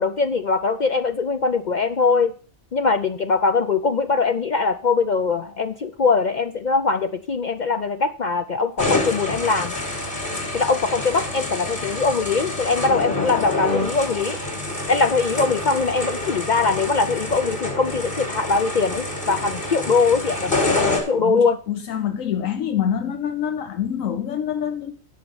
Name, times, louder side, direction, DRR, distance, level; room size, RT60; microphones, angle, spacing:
voice 1, 0.0-2.3 2.7-9.7 10.5-14.4 14.9-21.6, left 4 dB, 55° left, 0.5 m, -22 dB
sound 1, 8.8-21.0, left 2 dB, 40° left, 3.6 m, -27 dB
voice 2, 21.1-25.0, left 9 dB, 80° left, 1.1 m, -26 dB
10.0 x 5.9 x 6.9 m
omnidirectional pair, 1.4 m